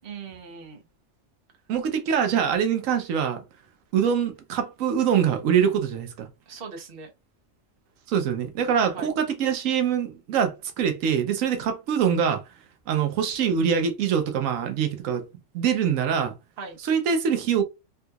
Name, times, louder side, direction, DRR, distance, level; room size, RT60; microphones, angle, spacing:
voice 1, 0.0-0.8 6.5-7.1 8.7-9.1 16.6-16.8, right 5 dB, 50° right, 1.0 m, -39 dB
voice 2, 1.7-3.4 3.9-6.3 8.1-12.4 12.9-15.2 15.5-16.3 16.8-17.6, right 7 dB, 90° right, 1.0 m, -24 dB
3.5 x 2.8 x 2.3 m
omnidirectional pair, 1.3 m